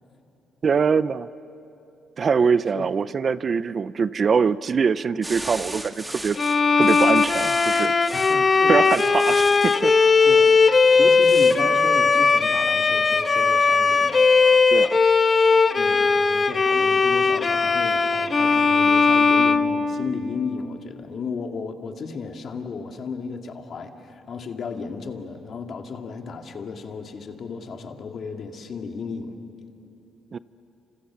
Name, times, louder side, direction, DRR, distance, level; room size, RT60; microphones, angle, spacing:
voice 1, 0.6-1.3 2.2-6.4 6.8-7.9 8.7-9.9 14.7-15.0 30.3-30.4, right 5 dB, 45° right, 16 dB, 0.6 m, -23 dB
sound 1, 5.2-8.4 8.8-9.8 11.2-11.6, right 1 dB, 15° right, 1.6 m, -36 dB
Bowed string instrument, 6.4-20.4, left 4 dB, 35° left, 1.1 m, -18 dB
voice 2, 8.1-9.2 10.2-10.5 11.0-14.2 15.8-29.4, left 5 dB, 55° left, 4 dB, 2.3 m, -34 dB
29.5 x 27.0 x 7.1 m, 2.8 s
cardioid pair, 90°, 0 cm